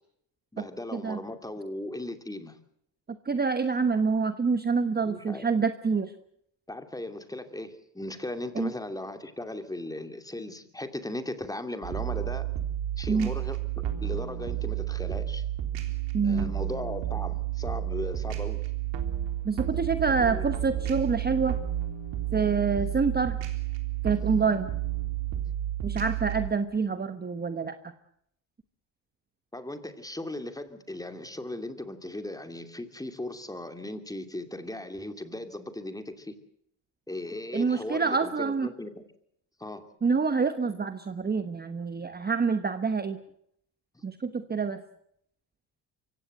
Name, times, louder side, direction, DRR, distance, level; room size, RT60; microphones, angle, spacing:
voice 1, 0.5-2.6 5.0-5.4 6.7-12.5 13.0-13.6 14.0-15.4 16.2-18.6 20.2-20.5 29.5-36.3 37.1-38.9 39.6-39.8 43.9-44.0, left 1 dB, 10° left, 8 dB, 2.6 m, -37 dB
voice 2, 3.2-6.1 8.5-8.7 13.1-13.3 16.1-16.5 19.4-21.6 22.3-23.4 24.0-24.7 25.8-27.8 37.5-38.7 40.0-43.2 44.0-44.8, right 5 dB, 20° right, 10 dB, 1.2 m, -27 dB
sound 1, 11.8-26.5, right 12 dB, 75° right, 3.7 m, -31 dB
24.0 x 16.5 x 7.9 m, 0.71 s
cardioid pair, 105°, 44 cm